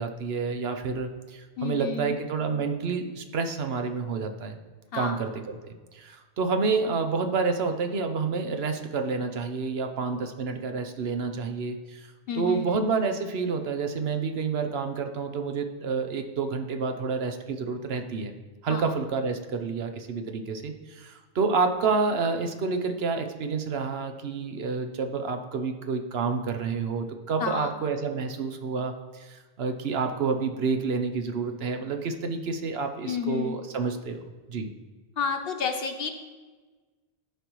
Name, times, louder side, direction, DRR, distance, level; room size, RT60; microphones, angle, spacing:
voice 1, 0.0-4.6 4.9-12.1 12.3-18.3 18.6-34.2 34.5-34.7, right 4 dB, 70° right, 6 dB, 1.0 m, -29 dB
voice 2, 1.6-2.2 4.9-5.3 12.3-12.9 18.7-19.0 27.4-27.8 33.0-33.6 35.2-36.1, left 5 dB, 65° left, 5 dB, 1.0 m, -31 dB
13.5 x 5.2 x 3.1 m, 1.3 s
omnidirectional pair, 1.1 m